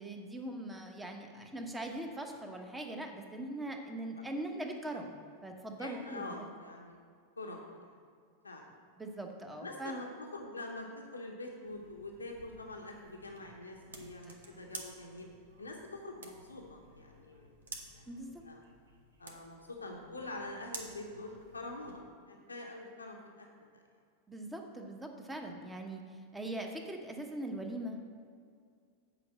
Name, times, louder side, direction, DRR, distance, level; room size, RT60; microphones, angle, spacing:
voice 1, 0.0-6.5 9.0-10.0 14.2-14.4 18.1-18.4 24.3-28.0, right 1 dB, 10° right, 3 dB, 1.1 m, -41 dB
voice 2, 5.8-7.0 7.4-7.9 8.4-8.7 9.6-15.3 15.6-17.6 17.9-18.1 18.4-18.6 19.2-23.5 23.7-23.8 25.4-25.5, left 2 dB, 80° left, 1 dB, 0.9 m, -45 dB
sound 1, 11.6-22.0, right 3 dB, 70° right, 1.1 m, -52 dB
8.1 x 4.8 x 7.2 m, 2.2 s
figure-of-eight pair, 90°, 0 cm